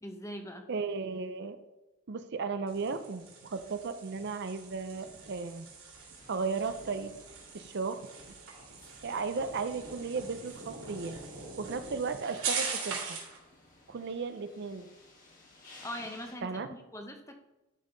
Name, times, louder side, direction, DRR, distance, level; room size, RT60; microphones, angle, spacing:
voice 1, 0.0-0.7 15.8-17.4, equal, 15° left, 5 dB, 0.8 m, -42 dB
voice 2, 0.7-1.6 2.1-5.7 6.3-7.1 7.5-8.0 9.0-11.2 11.6-13.2 13.9-14.9 16.4-16.7, right 4 dB, 50° right, 10 dB, 0.5 m, -35 dB
sound 1, 2.7-13.4, right 5 dB, 70° right, 3.0 m, -41 dB
sound 2, 6.1-16.4, left 2 dB, 40° left, 1.9 m, -58 dB
12.0 x 5.5 x 3.9 m, 1.0 s
head